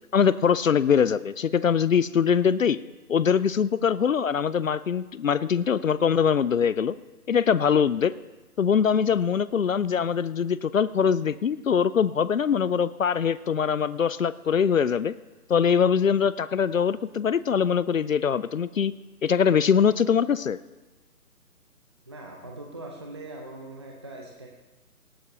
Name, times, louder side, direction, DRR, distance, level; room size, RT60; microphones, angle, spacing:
voice 1, 0.1-2.8 3.1-7.0 7.3-8.1 8.6-15.1 15.5-18.9 19.2-20.6, left 7 dB, 60° left, 17 dB, 0.5 m, -23 dB
voice 2, 22.1-24.5, right 2 dB, 20° right, 0 dB, 0.6 m, -41 dB
18.5 x 14.0 x 2.9 m, 1.2 s
figure-of-eight pair, 145°, 45 cm